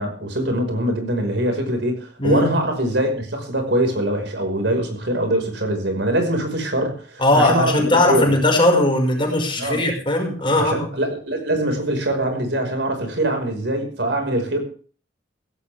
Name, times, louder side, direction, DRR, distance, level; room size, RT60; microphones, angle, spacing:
voice 1, 0.0-8.3 9.6-9.8 10.5-14.6, right 1 dB, 70° right, 5 dB, 5.4 m, -23 dB
voice 2, 2.2-2.5 7.2-10.9, left 1 dB, 30° left, 2 dB, 5.5 m, -18 dB
16.5 x 16.0 x 3.6 m, 0.42 s
head